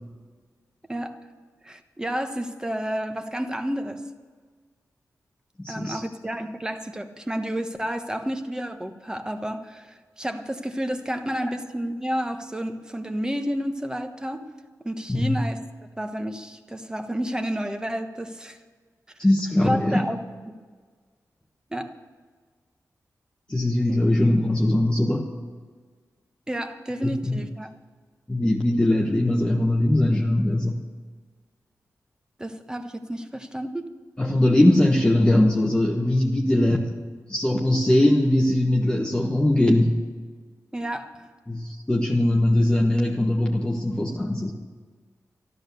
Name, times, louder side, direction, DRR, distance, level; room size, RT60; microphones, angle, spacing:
voice 1, 1.6-4.0 5.7-14.4 14.8-15.6 16.0-18.6 19.6-20.2 20.5-20.6 21.7-21.9 23.9-24.1 26.5-27.7 32.4-33.8 40.7-41.3, equal, 10° right, 6 dB, 1.2 m, -30 dB
voice 2, 5.6-6.0 15.1-15.4 19.2-20.0 23.5-25.3 27.0-27.4 28.3-30.8 34.2-36.9 37.3-40.0 41.5-44.5, left 1 dB, 15° left, -1 dB, 1.2 m, -21 dB
13.0 x 12.5 x 6.8 m, 1.5 s
wide cardioid pair, 95°, 6 cm